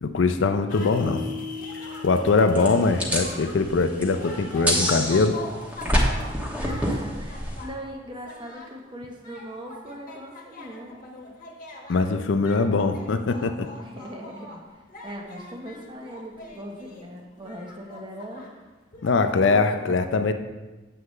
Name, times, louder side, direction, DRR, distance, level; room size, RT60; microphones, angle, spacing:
voice 1, 0.0-1.2 2.0-5.4 11.9-13.7 19.0-20.3, left 4 dB, 80° left, 9 dB, 0.5 m, -22 dB
sound 1, 0.7-8.8 9.2-18.6 18.9-19.8, left 2 dB, 45° left, 1.2 m, -43 dB
sound 2, 0.8-4.0, left 5 dB, 75° right, 0.7 m, -39 dB
sound 3, 2.6-7.6, equal, 10° right, 1.1 m, -27 dB
voice 2, 6.6-11.0 13.8-18.4 19.1-20.0, equal, 25° right, 1 dB, 1.0 m, -40 dB
7.7 x 7.7 x 3.2 m, 1.2 s
head